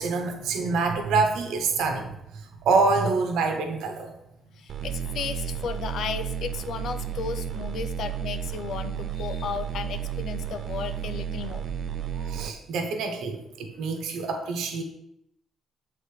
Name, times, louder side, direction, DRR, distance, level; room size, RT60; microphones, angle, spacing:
voice 1, 0.0-2.1 2.6-4.1 12.1-14.8, right 4 dB, 85° right, 4 dB, 1.0 m, -26 dB
voice 2, 4.5-11.7, left 6 dB, 70° left, 10 dB, 0.6 m, -34 dB
sound 1, 4.7-12.5, right 8 dB, 60° right, 0.4 m, -32 dB
7.8 x 3.9 x 4.9 m, 0.84 s
cardioid pair, 90°, 0 cm